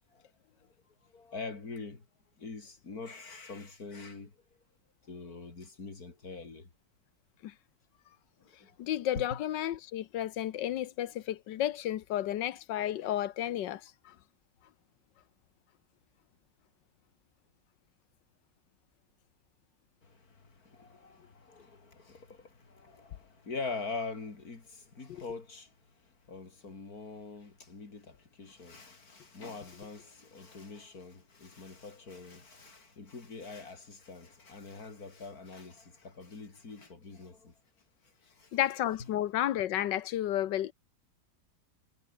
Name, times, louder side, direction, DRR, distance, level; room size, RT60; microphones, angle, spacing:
voice 1, 1.0-2.0 2.4-4.3 5.0-6.7 8.6-8.8 9.2-9.4 20.0-25.7 26.3-37.5 38.2-38.6 39.0-39.1, left 4 dB, 55° left, 3.9 m, -44 dB
voice 2, 8.8-14.1 25.1-25.2 38.5-40.7, left 12 dB, 85° left, 1.5 m, -32 dB
omnidirectional pair, 1.9 m